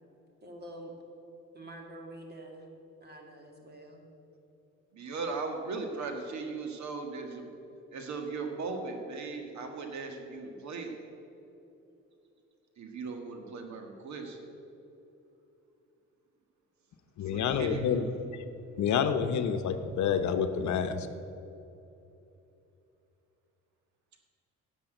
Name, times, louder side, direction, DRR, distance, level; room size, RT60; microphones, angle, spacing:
voice 1, 0.4-0.9 1.5-2.7 3.0-4.1, right 1 dB, 35° right, 2.5 m, -46 dB
voice 2, 4.9-7.5 7.9-11.0 12.8-14.4 17.3-18.1, right 4 dB, 65° right, 1.7 m, -38 dB
voice 3, 17.2-18.1 18.8-21.1, left 7 dB, 70° left, 0.9 m, -28 dB
10.0 x 7.5 x 9.0 m
cardioid pair, 90°, 30 cm